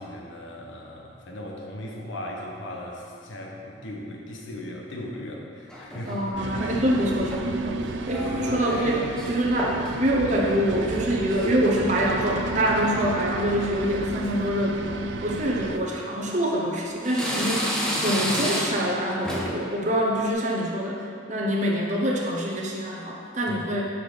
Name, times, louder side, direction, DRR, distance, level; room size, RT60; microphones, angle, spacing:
voice 1, 0.0-6.2 6.4-6.7 8.3-8.4 23.5-23.6, left 1 dB, 85° left, -1 dB, 1.0 m, -38 dB
sound 1, 5.7-6.4 7.1-7.6 8.1-9.3 9.6-9.9 10.2-12.2 12.5-13.0 13.6-13.9 14.2-14.3 15.3-15.4 16.0-16.7 17.0-18.9 19.2-19.6 20.0-20.3, equal, 5° left, 0.9 m, -32 dB
voice 2, 6.1-15.0 15.2-17.8 18.0-23.8, equal, 40° right, -2 dB, 0.8 m, -25 dB
sound 2, 6.4-15.8, right 3 dB, 75° right, 0.4 m, -32 dB
6.2 x 5.6 x 5.1 m, 2.5 s
head